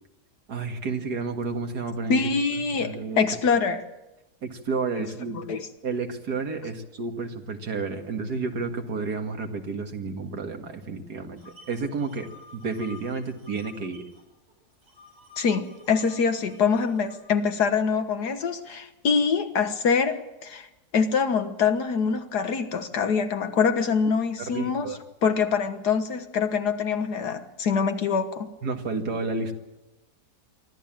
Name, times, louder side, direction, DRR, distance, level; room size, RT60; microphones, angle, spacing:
voice 1, 0.5-2.2 2.8-3.3 4.4-5.4 5.8-14.0 24.4-25.0 28.6-29.5, right 4 dB, 85° right, 5 dB, 2.4 m, -31 dB
voice 2, 2.1-3.8 5.0-5.1 5.3-5.7 15.4-20.7 20.9-24.9 25.2-28.5, left 5 dB, 85° left, 8 dB, 2.0 m, -24 dB
sound 1, 11.4-14.2 14.5-17.2, left 4 dB, 40° right, 7.2 m, -50 dB
24.0 x 14.5 x 9.0 m, 1.0 s
omnidirectional pair, 1.7 m